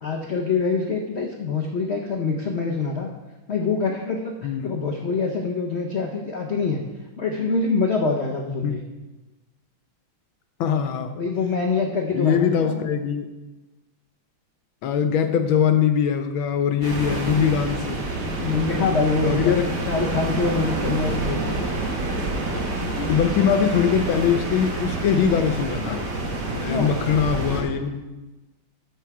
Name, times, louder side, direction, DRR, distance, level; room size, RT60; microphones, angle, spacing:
voice 1, 0.0-3.1 3.5-6.8 7.2-8.8 11.2-12.8 18.4-19.5 19.9-21.6 26.5-27.0, left 4 dB, 75° left, 1 dB, 0.6 m, -25 dB
voice 2, 10.6-11.1 12.1-13.3 14.8-18.0 18.6-18.9 19.2-19.6 23.0-26.0 26.6-28.3, left 7 dB, 90° left, 8 dB, 1.6 m, -22 dB
sound 1, 16.8-27.6, right 2 dB, 60° right, 2.0 m, -28 dB
13.0 x 4.5 x 4.7 m, 1.1 s
omnidirectional pair, 2.1 m